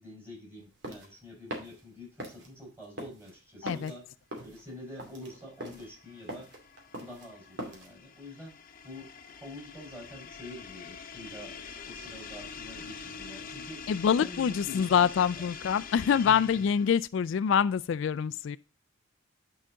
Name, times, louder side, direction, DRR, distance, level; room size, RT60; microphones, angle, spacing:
voice 1, 0.0-4.1 4.4-6.6 7.0-8.6 8.8-11.6 11.8-13.9 14.2-15.5 16.1-16.6, left 1 dB, 10° right, 4.7 m, -46 dB
sound 1, 0.6-7.9, right 1 dB, 60° right, 2.6 m, -42 dB
sound 2, 5.1-17.1, left 5 dB, 45° left, 0.8 m, -45 dB
voice 2, 13.9-18.6, left 7 dB, 65° left, 0.3 m, -26 dB
9.9 x 4.8 x 3.8 m
head